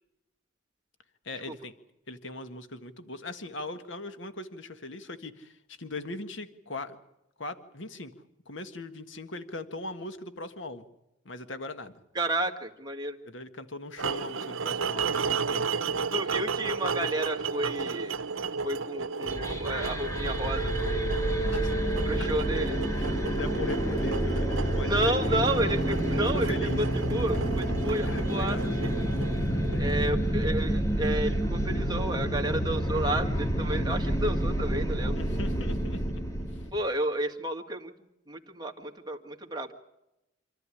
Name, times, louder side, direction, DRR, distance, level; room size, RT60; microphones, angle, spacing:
voice 1, 1.3-1.7 2.1-7.0 7.4-8.1 8.5-10.9 11.3-12.0 13.3-16.1 21.3-22.3 22.9-25.4 26.2-26.8 28.1-28.7 29.7-30.3 35.1-36.0 36.5-36.7, left 2 dB, 65° left, 9 dB, 1.7 m, -40 dB
voice 2, 12.1-13.2 16.1-18.2 18.6-21.2 22.0-22.8 24.8-29.0 29.8-35.2 36.7-37.9 38.3-39.8, right 1 dB, 20° right, 3 dB, 2.0 m, -31 dB
sound 1, 14.0-30.1, right 5 dB, 80° right, 0.8 m, -33 dB
sound 2, 19.3-36.7, right 1 dB, 15° left, 2.2 m, -29 dB
27.5 x 13.5 x 10.0 m, 0.89 s
head